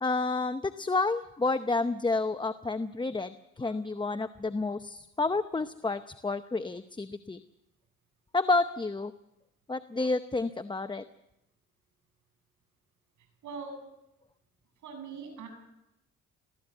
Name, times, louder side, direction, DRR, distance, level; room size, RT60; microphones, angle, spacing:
voice 1, 0.0-7.4 8.3-9.1 9.7-11.0, left 3 dB, 15° left, 10 dB, 0.7 m, -30 dB
voice 2, 13.4-13.7 14.8-15.5, right 5 dB, 75° right, 5 dB, 8.0 m, -41 dB
22.5 x 16.0 x 8.1 m, 0.89 s
cardioid pair, 90°, 30 cm